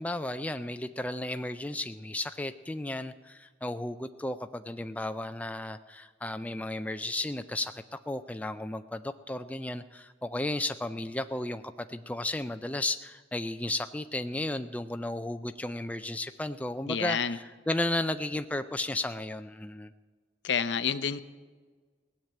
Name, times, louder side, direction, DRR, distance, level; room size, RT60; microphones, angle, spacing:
voice 1, 0.0-19.9, left 1 dB, 10° left, 9 dB, 0.3 m, -34 dB
voice 2, 16.9-17.4 20.4-21.2, left 7 dB, 75° left, 13 dB, 0.6 m, -29 dB
17.5 x 7.4 x 8.9 m, 1.4 s
head